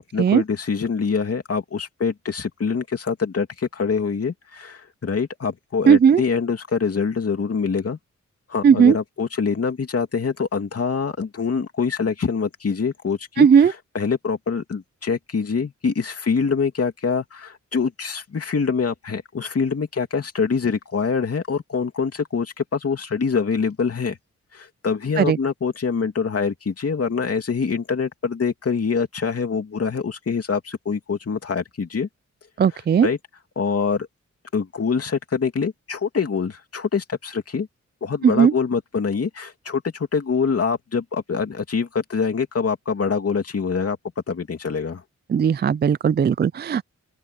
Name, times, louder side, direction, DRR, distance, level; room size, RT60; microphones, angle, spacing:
voice 1, 0.0-8.0 8.5-24.2 24.5-32.1 32.7-33.2 33.6-34.1 34.5-37.7 38.0-44.0 44.3-45.0, left 5 dB, 55° left, 2.8 m, -25 dB
voice 2, 5.9-6.2 8.6-9.0 13.4-13.7 25.2-25.4 32.6-33.1 38.4-38.5 45.3-46.8, right 7 dB, 35° right, 0.4 m, -16 dB
open air
cardioid pair, 80°, 29 cm